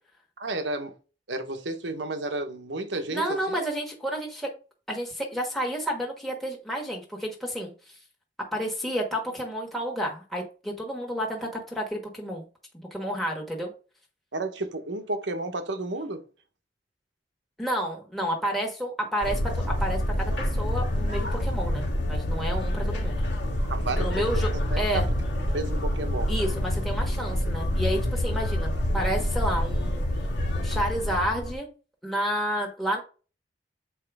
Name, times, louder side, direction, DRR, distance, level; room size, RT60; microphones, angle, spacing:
voice 1, 0.4-0.9 1.3-3.6 14.3-16.2 23.6-24.4 24.7-25.0 25.5-26.3, right 2 dB, 85° right, 1.1 m, -32 dB
voice 2, 3.1-4.5 4.9-7.7 8.5-12.5 12.7-13.7 17.6-20.3 20.6-23.2 24.0-24.5 24.8-25.1 26.3-30.0 30.5-31.7 32.0-33.0, equal, ahead, 1.4 m, -30 dB
sound 1, 19.2-31.5, left 1 dB, 80° left, 1.8 m, -27 dB
7.5 x 4.5 x 3.5 m
head